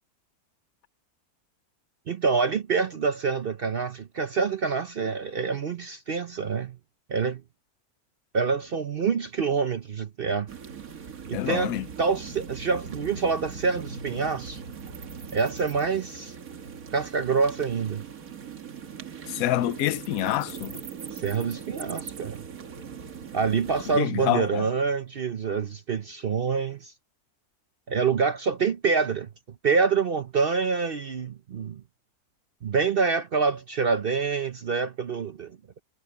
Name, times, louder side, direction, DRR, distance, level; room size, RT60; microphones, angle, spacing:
voice 1, 2.1-6.8 7.1-7.4 8.3-10.5 11.3-14.6 15.3-16.3 16.9-18.0 21.1-22.4 23.3-26.9 27.9-29.3 29.6-31.8 32.6-35.8, right 5 dB, 50° right, 0.8 m, -26 dB
sound 1, 10.5-24.0, right 6 dB, 65° right, 1.9 m, -40 dB
voice 2, 11.3-11.9 19.3-20.8 23.9-24.7, left 14 dB, 70° left, 1.0 m, -27 dB
omnidirectional pair, 1.6 m